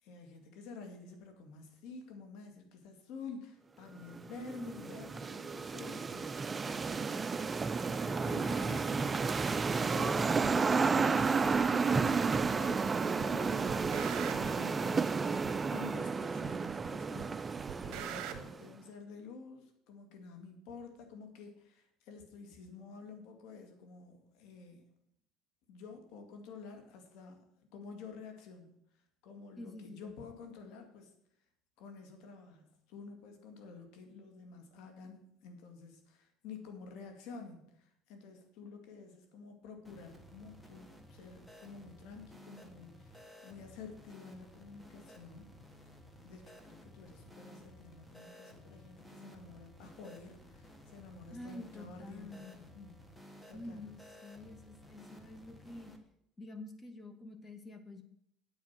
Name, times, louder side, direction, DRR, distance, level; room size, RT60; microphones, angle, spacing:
voice 1, 0.0-7.3 7.9-9.1 9.6-24.9 25.7-27.4 27.7-28.8 29.2-31.1 31.8-45.5 46.2-52.4 52.7-53.0 53.5-53.9, left 5 dB, 70° left, 5 dB, 2.4 m, -50 dB
sound 1, 4.1-18.6, right 5 dB, 20° right, 0.4 m, -32 dB
voice 2, 4.3-4.8 5.6-6.0 8.2-9.7 29.6-30.1 51.3-52.6 53.5-55.9 56.4-58.0, left 1 dB, 20° left, 8 dB, 1.6 m, -48 dB
sound 2, 10.4-10.6 11.4-11.5 12.4-12.9 13.2-14.7 15.4-15.5 16.4-16.9 17.2-18.4, right 10 dB, 60° right, 1.3 m, -43 dB
sound 3, 39.8-56.0, equal, 5° left, 1.5 m, -55 dB
9.0 x 7.9 x 5.8 m, 0.73 s
supercardioid pair, 115°, 0 cm